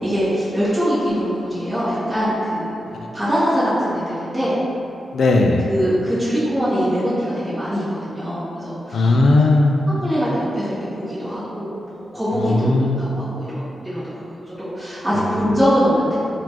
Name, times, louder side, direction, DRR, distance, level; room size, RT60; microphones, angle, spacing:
voice 1, 0.0-2.7 3.1-4.6 5.6-9.2 10.0-14.2 14.5-16.1, equal, 5° right, -13 dB, 1.3 m, -22 dB
voice 2, 5.1-5.7 8.9-9.8 12.3-13.1, left 2 dB, 80° left, 1 dB, 0.3 m, -17 dB
3.6 x 2.4 x 2.9 m, 2.7 s
cardioid pair, 85°, 0 cm